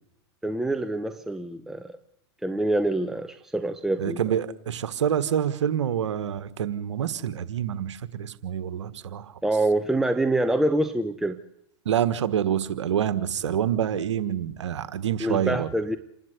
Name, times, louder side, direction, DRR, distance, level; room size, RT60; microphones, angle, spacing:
voice 1, 0.4-2.0 2.4-4.2 9.4-11.4 15.2-16.0, right 1 dB, 5° right, 8 dB, 0.9 m, -25 dB
voice 2, 4.0-9.4 11.8-15.7, right 9 dB, 85° right, 13 dB, 1.5 m, -27 dB
28.0 x 11.5 x 8.2 m, 0.75 s
hypercardioid pair, 110°, 15 cm